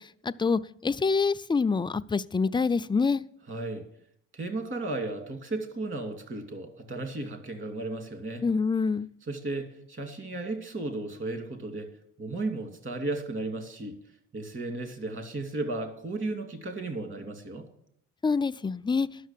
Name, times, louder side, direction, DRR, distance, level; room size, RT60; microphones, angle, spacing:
voice 1, 0.0-3.2 8.4-9.1 18.2-19.1, left 4 dB, 15° left, 0.4 m, -26 dB
voice 2, 3.5-3.9 4.3-8.4 9.3-11.9 12.2-14.0 14.3-17.7, right 2 dB, 40° right, 2.7 m, -34 dB
11.0 x 6.6 x 7.4 m
cardioid pair, 90°, 30 cm